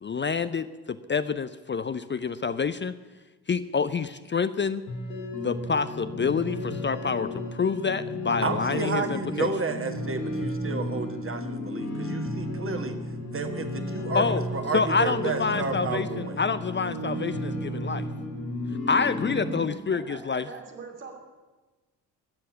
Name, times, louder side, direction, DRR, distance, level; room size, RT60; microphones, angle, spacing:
voice 1, 0.0-2.9 3.5-4.8 5.4-9.5 14.1-14.4 14.7-18.1 18.9-20.5, left 5 dB, 25° left, 12 dB, 0.6 m, -27 dB
sound 1, 4.9-19.7, left 1 dB, 75° left, 2.6 m, -33 dB
voice 2, 8.4-13.0 13.3-16.4, right 4 dB, 25° right, 7 dB, 1.7 m, -31 dB
voice 3, 19.9-21.1, right 5 dB, 80° right, -1 dB, 2.9 m, -42 dB
22.0 x 7.7 x 8.4 m, 1.2 s
figure-of-eight pair, 40°, 50 cm